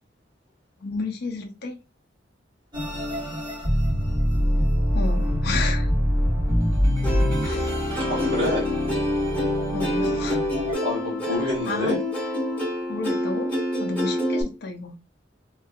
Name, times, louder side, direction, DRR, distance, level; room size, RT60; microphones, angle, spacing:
voice 1, 0.8-1.8 4.9-5.9 7.4-7.8 9.7-10.4 11.7-12.0 12.9-13.5 13.8-14.9, left 3 dB, 55° left, 0.5 m, -31 dB
sound 1, 2.7-10.7, equal, 25° right, 1.7 m, -24 dB
Plucked string instrument, 7.0-14.4, left 1 dB, 10° left, 1.4 m, -27 dB
voice 2, 8.0-8.7 10.8-12.0, left 1 dB, 70° right, 1.5 m, -27 dB
3.1 x 3.1 x 2.4 m
head